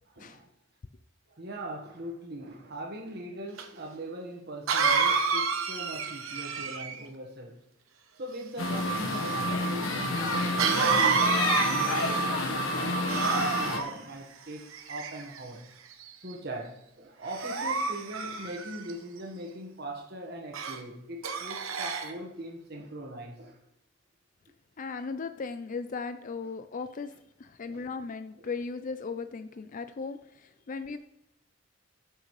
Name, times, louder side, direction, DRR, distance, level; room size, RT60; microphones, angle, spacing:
voice 1, 0.1-0.5 1.3-7.6 8.1-11.4 11.7-15.6 16.2-23.6 27.7-27.8 28.4-28.5, right 1 dB, 55° right, 1.5 m, -41 dB
Cough, 3.6-3.7 4.7-7.0 10.6-12.3 13.0-13.9 14.7-15.4 16.0-16.3 17.3-18.9 20.5-20.8 21.2-22.1, right 5 dB, 90° right, 1.1 m, -29 dB
sound 1, 8.6-13.8, left 1 dB, 80° left, 1.3 m, -29 dB
voice 2, 24.8-31.0, left 4 dB, 40° left, 0.4 m, -37 dB
19.0 x 6.4 x 3.2 m
head